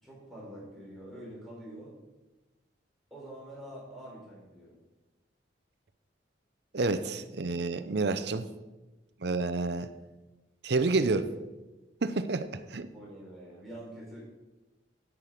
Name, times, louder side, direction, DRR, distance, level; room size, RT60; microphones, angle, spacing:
voice 1, 0.0-1.9 3.1-4.8 12.9-14.2, right 1 dB, ahead, -6 dB, 4.4 m, -46 dB
voice 2, 6.7-8.5 9.2-9.9 10.6-11.3 12.0-12.9, right 3 dB, 65° right, 12 dB, 0.6 m, -29 dB
10.0 x 9.1 x 5.0 m, 1.1 s
head